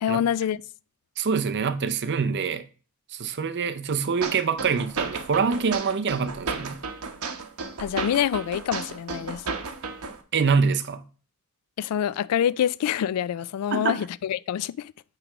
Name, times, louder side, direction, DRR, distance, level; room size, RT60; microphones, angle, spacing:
voice 1, 0.0-0.6 7.8-9.4 11.8-14.9, left 9 dB, 90° left, 0.3 m, -26 dB
voice 2, 1.2-2.6 3.1-6.8 10.3-11.0 13.7-14.0, right 5 dB, 50° right, 0.6 m, -25 dB
sound 1, 4.2-10.2, right 4 dB, 80° right, 0.9 m, -33 dB
8.4 x 3.3 x 4.9 m
head